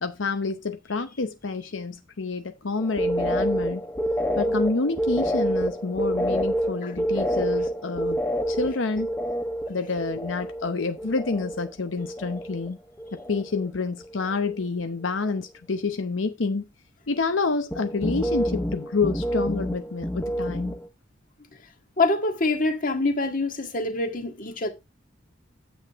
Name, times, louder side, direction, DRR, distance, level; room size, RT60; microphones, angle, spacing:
voice 1, 0.0-3.8 4.4-8.2 8.5-9.1 9.7-12.8 13.1-16.6 17.1-20.7, left 3 dB, 80° left, 0.8 m, -28 dB
sound 1, 2.8-11.7 12.0-12.7 13.0-13.7 14.0-14.4 17.7-20.9, equal, 10° left, 1.2 m, -28 dB
voice 2, 22.0-24.7, left 2 dB, 45° left, 1.8 m, -25 dB
9.6 x 8.0 x 3.5 m
head